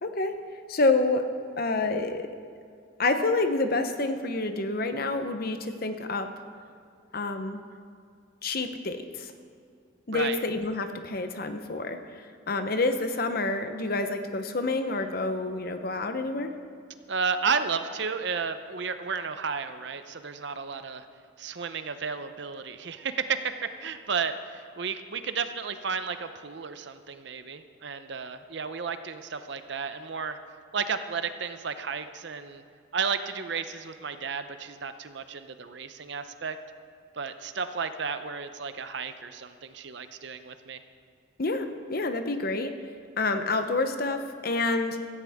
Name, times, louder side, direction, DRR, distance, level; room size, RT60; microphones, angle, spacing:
voice 1, 0.0-0.4 0.7-1.3 1.6-2.3 3.0-6.3 7.1-7.6 8.4-9.3 10.1-16.5 41.4-42.7 43.2-45.1, left 3 dB, 50° left, 8 dB, 0.9 m, -28 dB
voice 2, 10.1-10.4 17.1-21.1 21.4-30.4 30.7-32.6 32.9-36.6 37.2-40.8, right 5 dB, 60° right, 10 dB, 0.7 m, -33 dB
17.0 x 14.5 x 3.6 m, 2.3 s
head